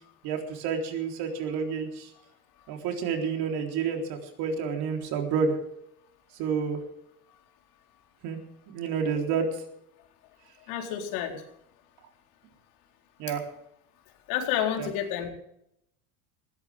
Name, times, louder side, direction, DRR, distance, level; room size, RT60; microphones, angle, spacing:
voice 1, 0.2-2.1 2.7-5.6 6.3-6.8 8.2-8.4 8.7-9.5 13.2-13.4 14.8-14.9, right 6 dB, 55° right, 2 dB, 4.0 m, -29 dB
voice 2, 10.7-11.3 14.3-15.3, left 10 dB, 70° left, 2 dB, 4.3 m, -29 dB
19.5 x 17.0 x 3.6 m, 0.76 s
supercardioid pair, 145°, 46 cm